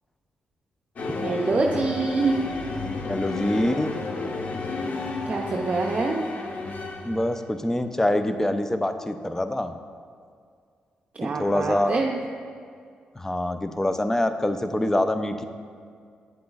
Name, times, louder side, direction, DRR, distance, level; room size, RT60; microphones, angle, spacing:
sound 1, 1.0-7.5, left 3 dB, 55° left, 0.8 m, -31 dB
voice 1, 1.2-2.4 5.3-6.2 11.2-12.2, right 3 dB, 45° right, 0 dB, 0.6 m, -25 dB
voice 2, 3.1-3.9 7.0-9.7 11.2-12.0 13.2-15.4, left 1 dB, 15° left, 9 dB, 0.5 m, -25 dB
8.6 x 7.6 x 2.4 m, 2.1 s
supercardioid pair, 65°, 3 cm